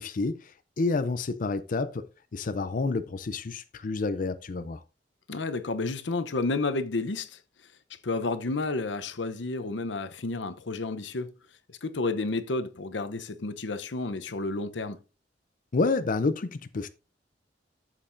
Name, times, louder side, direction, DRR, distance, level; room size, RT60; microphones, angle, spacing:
voice 1, 0.0-2.1 2.3-4.8 15.7-16.9, left 3 dB, 50° left, 0.5 m, -29 dB
voice 2, 5.3-7.4 8.0-11.3 11.7-15.0, left 3 dB, 85° left, 0.8 m, -31 dB
13.0 x 7.5 x 2.6 m
head